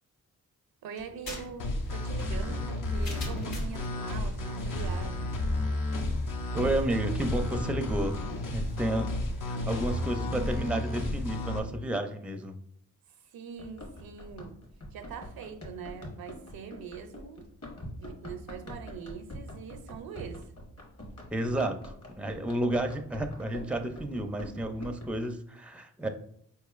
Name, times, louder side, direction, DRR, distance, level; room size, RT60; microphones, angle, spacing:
voice 1, 0.8-5.4 13.3-14.6 14.9-17.5 18.0-20.5, right 6 dB, 75° right, 0.5 m, -43 dB
sound 1, 1.0-3.9, left 2 dB, 75° left, 1.1 m, -43 dB
sound 2, 1.6-11.6, left 1 dB, 60° left, 0.7 m, -32 dB
voice 2, 6.5-8.2 8.5-9.1 9.5-12.6 21.3-26.1, right 1 dB, 5° right, 0.5 m, -31 dB
Run, 13.6-25.3, left 1 dB, 40° left, 1.2 m, -45 dB
4.3 x 2.9 x 2.4 m
supercardioid pair, 45°, 36 cm